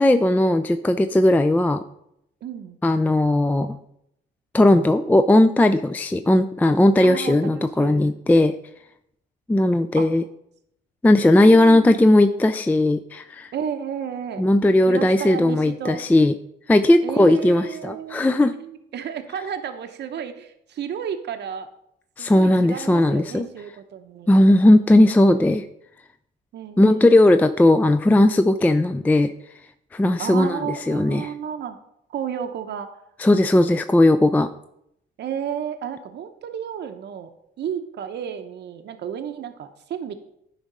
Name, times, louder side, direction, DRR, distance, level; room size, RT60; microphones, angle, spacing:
voice 1, 0.0-1.8 2.8-3.8 4.5-8.5 9.5-10.2 11.0-13.5 14.4-16.3 16.7-18.5 22.2-23.5 24.3-25.6 26.8-29.3 29.9-30.6 30.9-31.3 33.2-34.5, left 1 dB, 10° left, 9 dB, 0.3 m, -17 dB
voice 2, 2.4-2.8 7.0-8.2 10.0-10.1 11.3-12.6 13.5-14.4 14.9-16.0 17.0-21.7 22.2-24.3 26.5-27.3 30.2-31.8 32.1-33.0 35.2-37.3 37.6-40.4, right 8 dB, 60° right, 8 dB, 0.7 m, -32 dB
9.9 x 3.6 x 5.4 m, 0.77 s
cardioid pair, 90°, 20 cm